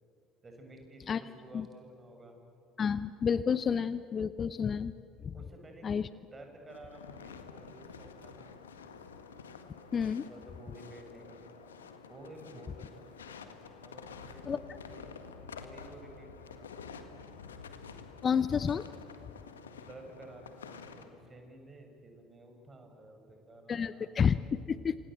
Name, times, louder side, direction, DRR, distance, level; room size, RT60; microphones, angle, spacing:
voice 1, 0.4-2.4 5.3-8.5 10.0-11.7 12.1-15.1 15.5-17.3 19.6-24.3, right 1 dB, 25° right, 4 dB, 6.5 m, -52 dB
voice 2, 2.8-4.9 5.2-5.3 5.8-6.1 9.9-10.3 14.5-14.6 18.2-18.8 23.7-25.0, left 7 dB, 35° left, 16 dB, 0.7 m, -30 dB
sound 1, 6.7-21.1, left 5 dB, 80° left, 1.8 m, -49 dB
28.0 x 27.0 x 7.7 m, 2.6 s
figure-of-eight pair, 60°, 0 cm